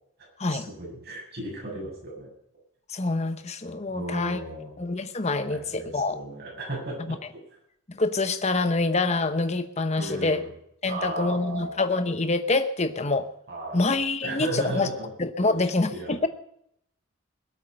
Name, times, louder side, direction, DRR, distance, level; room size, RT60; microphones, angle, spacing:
voice 1, 0.5-2.3 3.9-4.8 5.4-7.1 10.0-10.5 10.9-11.7 13.5-13.9 14.2-15.1 15.4-15.5 15.9-16.2, right 2 dB, 50° right, -3 dB, 7.7 m, -35 dB
voice 2, 2.9-4.4 4.8-6.2 7.0-7.2 7.9-10.4 10.8-13.3 13.7-14.9 15.2-16.3, left 3 dB, 30° left, 9 dB, 1.0 m, -26 dB
22.0 x 8.4 x 5.6 m, 0.72 s
head